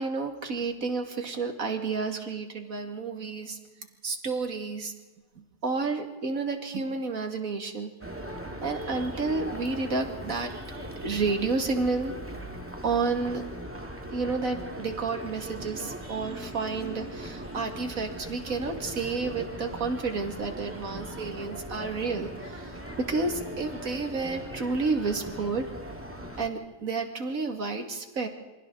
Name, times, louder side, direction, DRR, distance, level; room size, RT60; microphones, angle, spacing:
voice 1, 0.0-3.6 4.0-4.9 5.6-7.9 8.6-12.1 12.8-13.4 14.1-22.7 23.0-25.7 26.4-28.3, right 4 dB, 55° right, 5 dB, 2.5 m, -30 dB
sound 1, 8.0-26.5, right 1 dB, 10° right, 2.0 m, -39 dB
28.5 x 25.0 x 3.9 m, 1.2 s
omnidirectional pair, 1.7 m